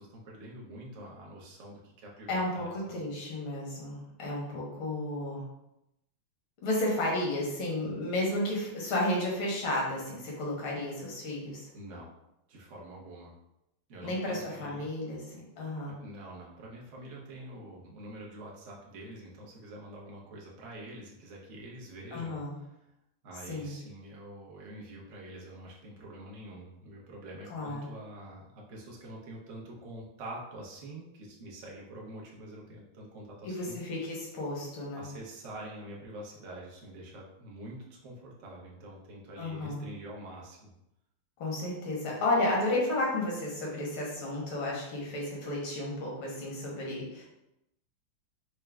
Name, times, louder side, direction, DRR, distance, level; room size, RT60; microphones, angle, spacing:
voice 1, 0.0-3.0 11.7-12.1 12.5-13.3 13.9-14.9 15.9-22.6 23.2-33.8 34.9-40.7, right 1 dB, 65° right, -3 dB, 0.7 m, -46 dB
voice 2, 2.3-5.4 6.6-11.7 14.0-16.0 22.1-22.5 23.5-23.8 27.5-27.9 33.4-35.1 39.4-39.8 41.4-47.2, left 1 dB, 75° left, -3 dB, 1.9 m, -32 dB
4.6 x 2.1 x 3.4 m, 0.87 s
omnidirectional pair, 2.3 m